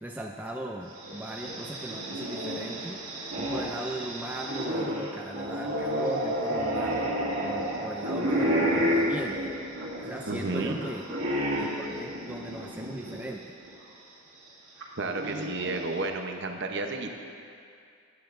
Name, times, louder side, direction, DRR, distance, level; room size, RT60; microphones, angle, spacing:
voice 1, 0.0-3.0 3.4-7.1 7.4-9.5 10.0-11.1 11.6-13.4, right 1 dB, 5° right, 1 dB, 0.3 m, -38 dB
sound 1, 1.0-13.2 13.6-13.7 14.8-16.1, equal, 70° right, 2.0 m, -31 dB
voice 2, 10.3-10.8 15.0-17.1, right 3 dB, 50° right, 4 dB, 0.8 m, -32 dB
16.0 x 10.5 x 2.5 m, 2.5 s
head